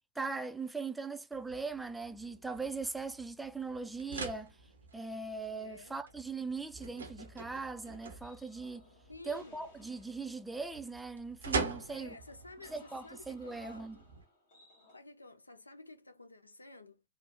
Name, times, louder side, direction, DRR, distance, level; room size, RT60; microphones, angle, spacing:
voice 1, 0.2-4.6 4.9-8.9 9.3-12.2 12.7-14.0, right 4 dB, 5° right, 0.3 m, -40 dB
sound 1, 1.3-14.2, right 4 dB, 70° right, 0.6 m, -44 dB
voice 2, 5.5-6.0 9.1-9.6 11.8-14.0 14.9-17.0, left 2 dB, 80° left, 0.4 m, -52 dB
sound 2, 7.2-15.0, left 2 dB, 55° left, 1.1 m, -63 dB
3.2 x 2.0 x 2.6 m
figure-of-eight pair, 95°, 0 cm